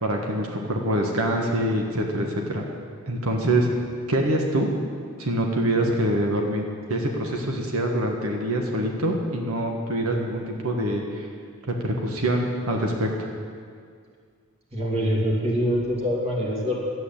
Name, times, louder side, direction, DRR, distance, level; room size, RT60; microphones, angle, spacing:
voice 1, 0.0-2.6 3.1-3.7 4.1-4.7 5.2-6.6 6.9-11.3 11.6-13.3, right 1 dB, 85° right, 1 dB, 1.5 m, -25 dB
voice 2, 14.7-16.8, equal, 30° right, -3 dB, 2.6 m, -24 dB
12.5 x 8.5 x 8.7 m, 2.1 s
head